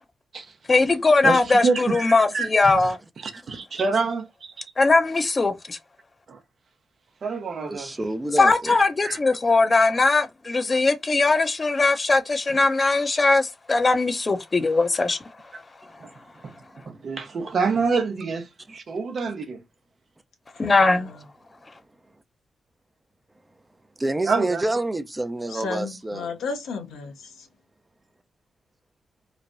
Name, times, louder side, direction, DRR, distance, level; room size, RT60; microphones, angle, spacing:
voice 1, 0.7-3.0 4.8-5.8 8.4-15.2 20.6-21.1, left 3 dB, 40° left, 0.6 m, -20 dB
voice 2, 1.2-2.8 3.2-4.6 6.3-6.4 7.2-7.9 8.7-9.2 16.0-16.1 16.4-16.5 16.9-19.6 24.3-24.6, right 4 dB, 60° right, 0.7 m, -27 dB
voice 3, 7.7-8.8 24.0-26.3, right 2 dB, 25° right, 0.5 m, -28 dB
voice 4, 20.6-21.2 25.5-27.5, left 4 dB, 80° left, 0.8 m, -34 dB
3.1 x 2.1 x 2.6 m
hypercardioid pair, 40°, 0 cm